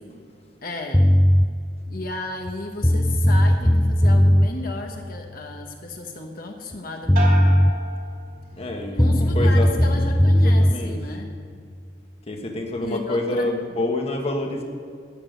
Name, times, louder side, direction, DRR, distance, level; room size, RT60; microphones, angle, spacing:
voice 1, 0.6-1.0 1.9-7.6 9.0-11.3 12.8-13.4, left 2 dB, 55° left, 2 dB, 1.3 m, -34 dB
sound 1, 0.9-1.5 2.5-2.6 2.8-4.5 6.7-6.8 7.1-7.7 9.0-10.7, equal, 5° left, 0.4 m, -17 dB
sound 2, 7.2-8.9 9.3-9.9, right 2 dB, 50° right, 2.4 m, -33 dB
voice 2, 8.5-10.1 10.4-11.0 12.3-14.6, left 2 dB, 35° left, 2 dB, 1.4 m, -27 dB
13.0 x 7.0 x 9.1 m, 2.3 s
head